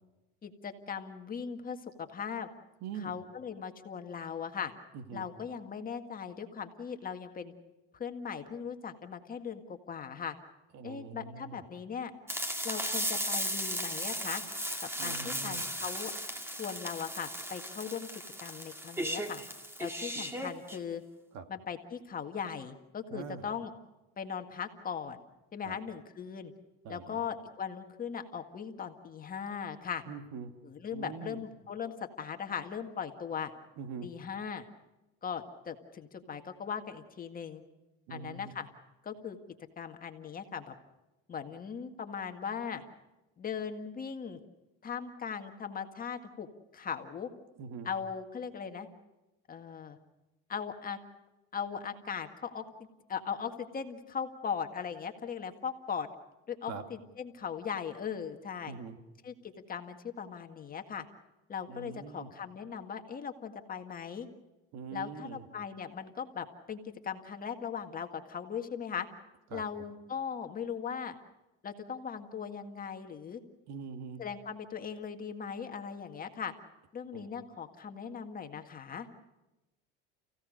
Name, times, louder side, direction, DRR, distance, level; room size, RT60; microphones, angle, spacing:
voice 1, 0.4-2.5 3.0-4.7 5.1-7.5 7.9-10.4 10.8-12.1 12.6-14.4 14.8-16.1 16.6-18.1 18.4-19.4 19.8-21.0 21.5-23.7 24.2-25.2 25.5-26.5 26.9-30.0 30.6-33.5 34.0-34.6 35.2-37.6 38.1-38.7 39.0-39.4 39.8-40.7 41.3-42.8 43.4-44.4 44.8-46.5 46.7-47.3 47.9-48.9 49.5-50.0 50.5-51.0 51.5-52.6 53.1-56.1 56.5-58.8 59.2-61.1 61.5-64.3 64.9-69.1 69.5-71.2 71.6-73.4 74.2-76.5 76.9-79.1, left 7 dB, 30° left, 6 dB, 1.8 m, -39 dB
voice 2, 2.8-3.2 4.9-5.3 10.7-11.6 15.0-15.6 20.1-20.2 21.3-21.5 23.1-23.5 25.6-25.8 26.8-27.2 30.1-30.5 30.9-31.4 33.8-34.1 38.1-38.5 47.6-47.9 56.7-56.8 58.7-59.0 61.7-62.3 64.7-65.5 69.5-69.9 73.7-74.2 77.1-77.2, right 5 dB, 60° right, 7 dB, 2.3 m, -43 dB
sound 1, 12.3-20.8, equal, 10° right, 2.1 m, -36 dB
30.0 x 16.5 x 6.6 m, 1.0 s
supercardioid pair, 120°, 30 cm